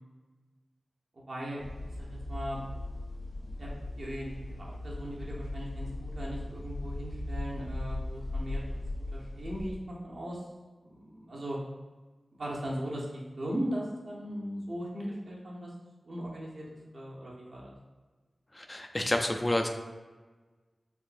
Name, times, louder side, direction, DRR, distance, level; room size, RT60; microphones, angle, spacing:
voice 1, 1.1-1.6 2.0-2.6 3.1-3.7 4.0-4.3 4.6-8.8 9.1-10.5 10.8-11.6 12.3-13.1 13.4-15.7 16.0-16.7 16.9-17.7, equal, 65° right, -5 dB, 0.8 m, -38 dB
sound 1, 1.6-9.7, left 2 dB, 80° left, 1.1 m, -38 dB
voice 2, 18.5-19.7, left 1 dB, 25° left, 5 dB, 0.3 m, -29 dB
3.6 x 2.8 x 2.5 m, 1.3 s
wide cardioid pair, 85°, 0 cm